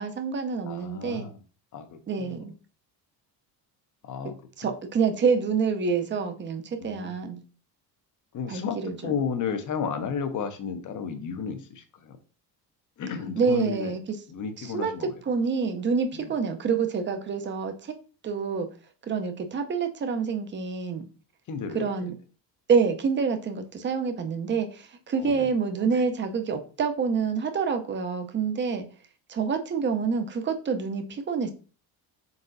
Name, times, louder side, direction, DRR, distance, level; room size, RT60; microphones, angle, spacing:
voice 1, 0.0-1.3 2.1-2.5 4.6-7.4 8.5-9.2 13.4-14.0 14.6-14.9 15.3-17.9 18.2-18.7 19.0-21.1 21.7-22.1 22.7-28.9 29.3-31.5, right 5 dB, 25° right, 0.6 m, -27 dB
voice 2, 0.6-1.4 1.7-2.4 4.0-4.3 4.6-4.7 6.8-7.1 8.3-12.2 13.0-14.0 14.3-15.1 16.1-16.3 21.5-21.9 25.2-25.5, left 6 dB, 45° left, 0.8 m, -33 dB
4.0 x 3.7 x 2.6 m
cardioid pair, 100°, 42 cm